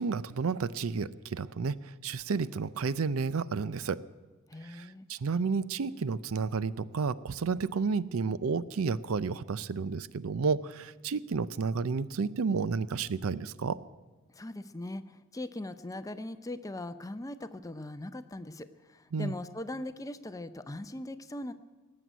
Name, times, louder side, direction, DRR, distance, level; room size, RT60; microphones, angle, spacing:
voice 1, 0.0-1.8 2.0-4.0 4.6-13.8 19.1-19.3, right 5 dB, 85° right, 17 dB, 0.5 m, -31 dB
voice 2, 4.5-5.1 14.3-21.5, left 1 dB, 15° left, 12 dB, 0.5 m, -40 dB
18.5 x 7.8 x 9.1 m, 1.3 s
head